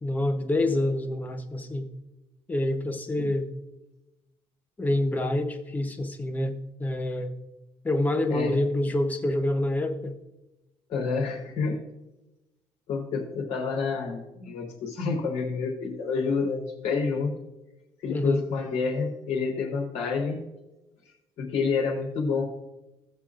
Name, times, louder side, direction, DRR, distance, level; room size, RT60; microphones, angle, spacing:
voice 1, 0.0-1.9 2.5-3.5 4.8-7.3 7.8-10.2 18.1-18.4, left 1 dB, 15° left, 6 dB, 0.8 m, -27 dB
voice 2, 10.9-11.8 12.9-17.3 18.0-20.4 21.4-22.4, left 5 dB, 90° left, -2 dB, 3.4 m, -28 dB
17.5 x 7.3 x 2.5 m, 1.0 s
cardioid pair, 170°, 11 cm